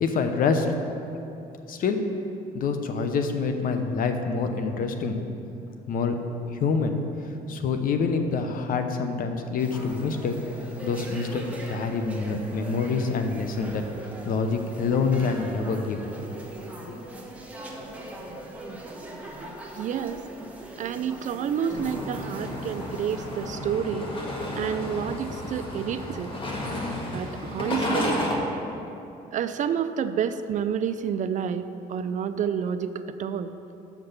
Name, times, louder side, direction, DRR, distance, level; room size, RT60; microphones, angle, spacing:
voice 1, 0.0-0.7 1.7-2.0 2.5-5.2 5.9-6.2 6.5-7.0 7.5-10.4 10.8-11.4 11.7-13.8 14.2-16.1 16.9-17.0, left 5 dB, 55° left, 6 dB, 0.8 m, -26 dB
sound 1, 9.6-23.5, right 1 dB, 10° right, 1.2 m, -40 dB
voice 2, 19.7-20.2 20.8-24.1 24.6-26.3 27.1-28.2 29.3-33.5, right 8 dB, 45° right, 11 dB, 0.4 m, -29 dB
sound 2, 21.7-28.3, left 1 dB, 30° left, 1.6 m, -32 dB
6.7 x 5.9 x 6.6 m, 2.9 s
cardioid pair, 110°, 17 cm